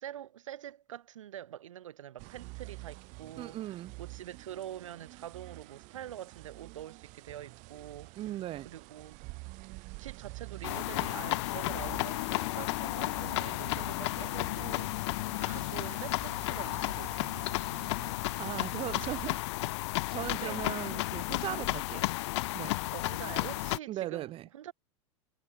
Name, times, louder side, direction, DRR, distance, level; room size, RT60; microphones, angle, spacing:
voice 1, 0.0-8.4 8.6-9.2 10.0-15.1 15.4-17.5 20.4-20.6 22.9-24.7, right 11 dB, 85° right, 3.6 m, -45 dB
sound 1, 2.2-19.3, right 27 dB, 50° right, 6.5 m, -48 dB
voice 2, 3.4-3.9 8.2-8.7 18.4-19.4 20.1-22.1 22.5-22.8 23.9-24.5, right 14 dB, 35° right, 1.4 m, -38 dB
sound 2, 10.6-23.8, left 21 dB, 65° left, 0.9 m, -33 dB
hypercardioid pair, 120°, 16 cm